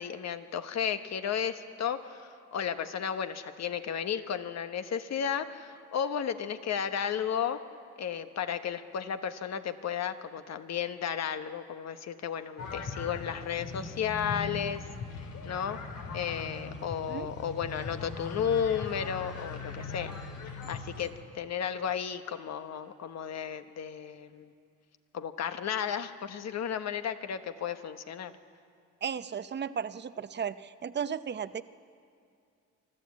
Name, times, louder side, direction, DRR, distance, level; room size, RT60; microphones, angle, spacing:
voice 1, 0.0-7.6 8.0-14.8 15.4-15.8 16.1-20.1 20.7-24.5 25.1-28.3, left 8 dB, 60° left, 9 dB, 1.2 m, -33 dB
sound 1, 12.6-21.1, left 4 dB, 80° left, 2.5 m, -40 dB
voice 2, 29.0-30.6 30.8-31.6, right 7 dB, 35° right, 13 dB, 0.7 m, -34 dB
25.5 x 13.0 x 8.4 m, 2.4 s
cardioid pair, 90°, 30 cm